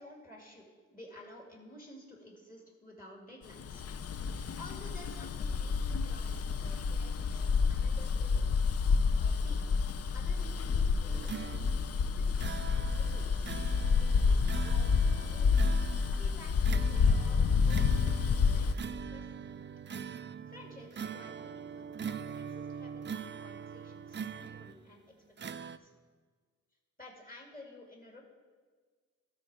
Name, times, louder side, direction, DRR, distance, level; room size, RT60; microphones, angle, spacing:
voice 1, 0.0-4.0 4.6-8.5 9.1-9.7 10.1-13.4 13.9-19.7 20.5-25.1 25.4-25.9 27.0-28.2, left 1 dB, 25° left, -1 dB, 2.3 m, -53 dB
Bus, 3.6-18.7, left 5 dB, 50° left, 0.5 m, -29 dB
sound 1, 11.1-24.9 25.4-25.8, right 7 dB, 35° right, 0.4 m, -43 dB
13.0 x 4.4 x 4.8 m, 1.5 s
cardioid pair, 40°, 31 cm